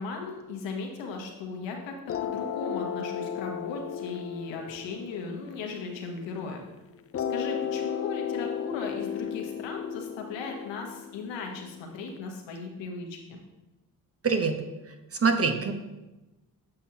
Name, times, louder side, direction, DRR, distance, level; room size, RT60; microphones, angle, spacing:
voice 1, 0.0-1.9 2.2-6.6 7.3-13.4, left 4 dB, 75° left, 1 dB, 1.2 m, -37 dB
sound 1, 2.1-6.5 7.1-12.1, left 8 dB, 35° left, 0.4 m, -34 dB
voice 2, 14.2-15.7, right 4 dB, 30° right, 6 dB, 1.0 m, -26 dB
7.8 x 5.6 x 2.9 m, 1.1 s
hypercardioid pair, 50°, 45 cm